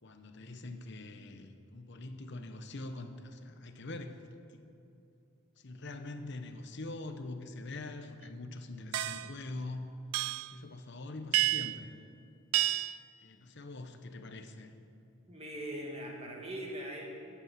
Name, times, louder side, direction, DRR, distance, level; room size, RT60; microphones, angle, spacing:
voice 1, 0.0-4.2 4.5-4.7 5.6-9.9 10.5-12.0 13.2-14.7, left 2 dB, 50° left, 7 dB, 0.9 m, -44 dB
sound 1, 8.9-9.3 10.1-10.5 11.3-11.8 12.5-13.0, right 15 dB, 80° right, 0.4 m, -30 dB
voice 2, 15.3-17.2, right 1 dB, 25° right, -1 dB, 2.1 m, -41 dB
14.5 x 8.4 x 7.4 m, 2.8 s
head